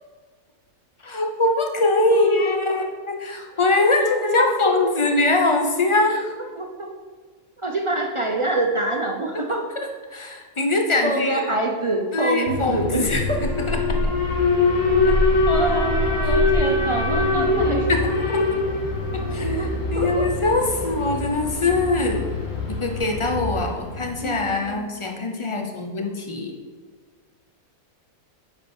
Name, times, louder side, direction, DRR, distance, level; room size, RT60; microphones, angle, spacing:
voice 1, 1.0-6.3 9.8-11.5 12.1-13.3 13.5-13.8 15.0-15.1 16.2-16.3 17.1-17.5 17.9-18.4 19.1-22.2 22.7-26.5, left 2 dB, 35° left, 2 dB, 0.5 m, -23 dB
voice 2, 2.1-2.8 4.0-4.9 6.5-6.9 7.6-9.6 11.0-13.0 15.5-17.9 19.2-20.3 24.2-24.9, right 2 dB, 50° right, 1 dB, 0.3 m, -26 dB
Alarm, 12.5-24.5, left 2 dB, 60° left, 1.4 m, -23 dB
7.8 x 5.3 x 4.4 m, 1.5 s
omnidirectional pair, 1.5 m